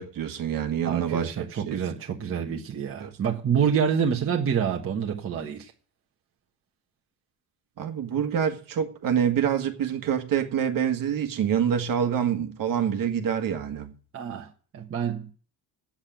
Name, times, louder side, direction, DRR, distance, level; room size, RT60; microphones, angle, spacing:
voice 1, 0.0-1.8 3.0-3.1 7.8-13.9, right 8 dB, 50° right, 1.7 m, -26 dB
voice 2, 0.8-5.7 14.1-14.5 14.7-15.3, right 7 dB, 30° right, 1.3 m, -27 dB
8.7 x 8.3 x 8.8 m
cardioid pair, 175°, 42 cm